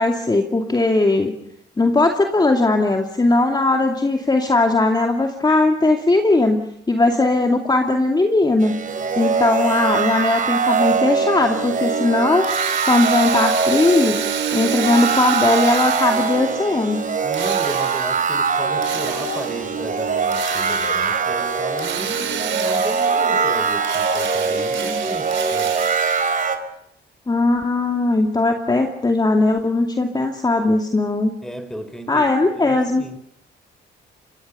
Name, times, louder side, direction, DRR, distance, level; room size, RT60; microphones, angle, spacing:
voice 1, 0.0-1.3 1.8-6.6 6.9-8.7 9.2-12.5 12.9-14.2 14.5-17.0 27.3-31.3 32.1-33.0, left 2 dB, 20° left, 4 dB, 2.5 m, -18 dB
sound 1, 8.6-26.6, right 5 dB, 40° right, 4.1 m, -22 dB
Drill, 12.4-16.6 17.3-18.3 18.8-19.7 20.3-21.2 21.8-23.4 23.8-26.4, right 9 dB, 70° right, 3.8 m, -30 dB
voice 2, 17.2-25.8 31.4-33.2, right 1 dB, 5° left, 10 dB, 4.8 m, -34 dB
Laughter, 19.0-19.4 19.7-21.1 21.5-21.9 22.2-25.0, left 7 dB, 75° left, 3.7 m, -34 dB
27.0 x 22.5 x 6.9 m, 0.77 s
cardioid pair, 90°, 20 cm